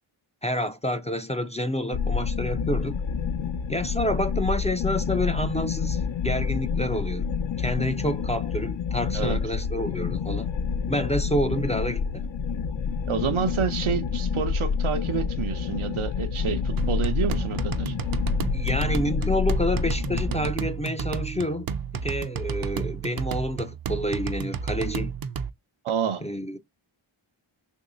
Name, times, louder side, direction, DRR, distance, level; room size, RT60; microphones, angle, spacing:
voice 1, 0.4-3.0 3.7-7.2 7.6-10.5 10.9-12.3 18.5-21.7 21.9-25.1 26.2-26.6, left 1 dB, 15° left, 0.4 m, -28 dB
sound 1, 1.9-20.5, left 6 dB, 65° left, 0.6 m, -28 dB
voice 2, 13.1-17.9 25.8-26.2, right 7 dB, 85° right, 0.7 m, -28 dB
sound 2, 16.8-25.5, right 6 dB, 50° right, 0.5 m, -32 dB
3.0 x 2.7 x 3.8 m
wide cardioid pair, 75°, 48 cm